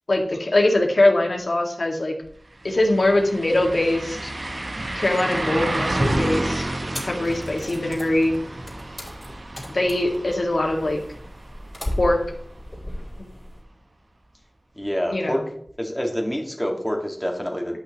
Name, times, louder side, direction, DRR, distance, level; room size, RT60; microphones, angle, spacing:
voice 1, 0.1-2.1 2.6-4.3 5.0-6.7 7.0-8.3 9.7-11.0 12.0-12.2 15.1-15.4, left 1 dB, 70° left, 1 dB, 1.9 m, -22 dB
sound 1, 2.2-2.3 2.6-12.4 12.8-12.9 15.7-15.8, right 1 dB, 55° right, 0.7 m, -30 dB
sound 2, 6.9-13.6, left 1 dB, 25° left, 3.2 m, -36 dB
voice 2, 14.8-15.4 15.8-17.8, equal, 5° left, 1 dB, 1.8 m, -26 dB
11.0 x 5.9 x 3.0 m, 0.66 s
wide cardioid pair, 65°, 0 cm